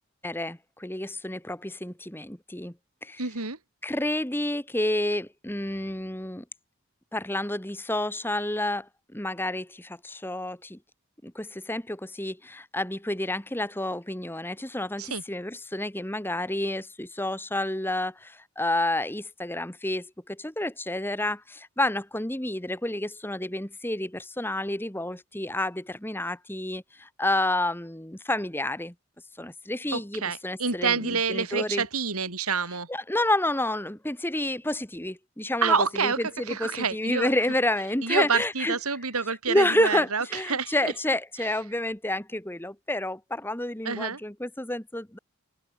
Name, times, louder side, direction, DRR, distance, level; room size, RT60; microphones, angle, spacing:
voice 1, 0.2-2.7 3.0-3.2 3.8-6.4 7.1-10.8 11.2-28.9 29.4-31.8 32.9-35.7 36.0-36.1 36.4-38.7 39.5-45.2, left 1 dB, 10° left, 1.5 m, -29 dB
voice 2, 3.2-3.6 15.0-15.2 29.9-32.9 35.6-37.3 38.0-40.9 41.4-41.5 43.8-44.2, right 5 dB, 85° right, 3.4 m, -28 dB
head